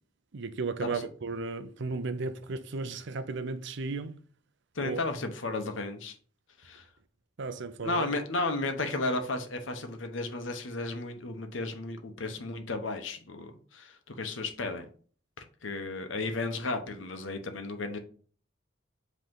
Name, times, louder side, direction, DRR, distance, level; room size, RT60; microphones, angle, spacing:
voice 1, 0.3-4.1 4.8-5.0 7.4-8.1, right 3 dB, 65° right, 0.6 m, -35 dB
voice 2, 4.8-6.2 6.6-6.8 7.8-14.8 15.6-18.0, left 2 dB, 75° left, 1.0 m, -34 dB
7.8 x 3.2 x 3.8 m
head